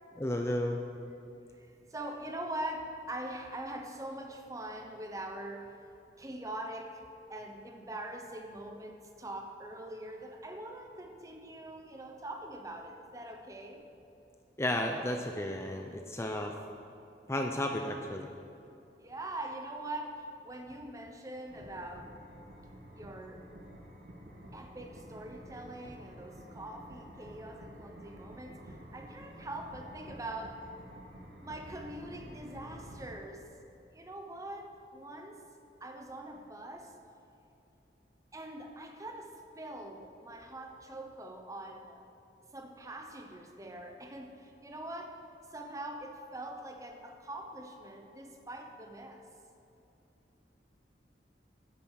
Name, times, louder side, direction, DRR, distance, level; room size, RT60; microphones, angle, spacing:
voice 1, 0.2-0.8 14.6-16.5 17.3-18.3, left 1 dB, 15° left, 3 dB, 0.5 m, -33 dB
voice 2, 1.5-5.8 6.2-13.9 19.0-22.2 22.9-23.5 24.5-30.6 31.4-33.5 33.9-35.4 35.8-36.9 38.3-42.1 42.5-45.2 45.5-49.3, right 1 dB, 20° right, 4 dB, 1.0 m, -43 dB
sound 1, 21.5-33.2, right 1 dB, 65° right, 1.4 m, -50 dB
10.0 x 9.1 x 6.5 m, 2.7 s
head